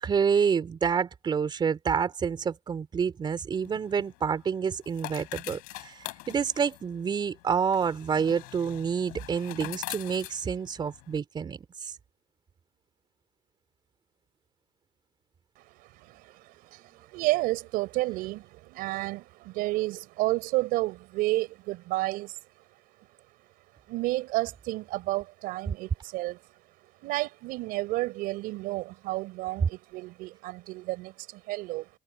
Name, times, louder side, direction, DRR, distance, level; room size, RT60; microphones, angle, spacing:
voice 1, 0.0-11.9, right 6 dB, 30° right, 3.8 m, -28 dB
sound 1, 3.5-11.2, left 24 dB, 85° left, 4.3 m, -44 dB
voice 2, 15.8-22.4 23.9-26.4 27.0-31.9, right 20 dB, 75° right, 4.7 m, -31 dB
cardioid pair, 130°, 15 cm